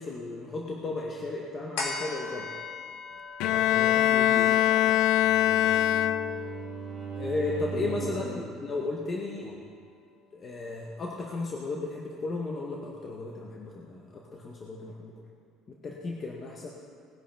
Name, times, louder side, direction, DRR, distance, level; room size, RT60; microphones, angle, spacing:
voice 1, 0.0-2.6 3.4-3.8 7.1-8.3 8.6-9.5 10.3-15.1 15.7-16.7, left 3 dB, 25° left, -2 dB, 1.0 m, -34 dB
sound 1, 1.8-8.5 9.0-9.1, left 3 dB, 85° left, 2.4 m, -41 dB
Bowed string instrument, 3.4-6.6, left 12 dB, 70° left, 0.4 m, -23 dB
voice 2, 3.7-5.9 7.7-8.5 9.4-9.6, left 2 dB, 50° left, 0 dB, 1.9 m, -41 dB
Bowed string instrument 2, 4.8-8.4, right 7 dB, 25° right, 2.3 m, -39 dB
19.0 x 11.0 x 3.4 m, 2.2 s
cardioid pair, 165°, 0 cm